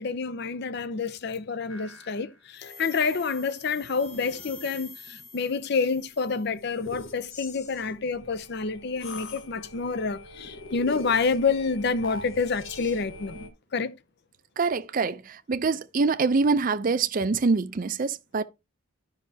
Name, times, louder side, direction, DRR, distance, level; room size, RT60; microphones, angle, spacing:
voice 1, 0.0-13.4 13.7-13.9, left 4 dB, 55° left, 0.5 m, -28 dB
sound 1, 1.7-13.5, left 2 dB, 70° left, 1.2 m, -44 dB
voice 2, 14.6-18.4, right 4 dB, 40° right, 0.4 m, -25 dB
12.0 x 5.5 x 2.7 m
head